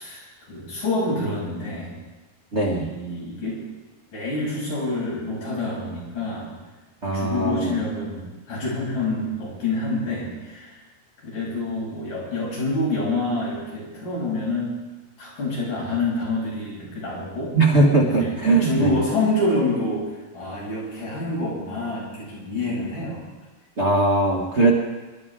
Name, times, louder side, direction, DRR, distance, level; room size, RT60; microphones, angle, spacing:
voice 1, 0.0-1.9 2.7-3.6 4.1-6.5 7.0-10.8 11.2-14.7 15.2-17.5 18.0-20.0 20.3-23.2, left 2 dB, 70° left, -7 dB, 8.8 m, -27 dB
voice 2, 2.5-2.9 7.0-7.7 17.6-19.0 23.8-24.7, right 2 dB, 85° right, -3 dB, 0.6 m, -20 dB
26.5 x 12.5 x 3.7 m, 1.2 s
omnidirectional pair, 3.9 m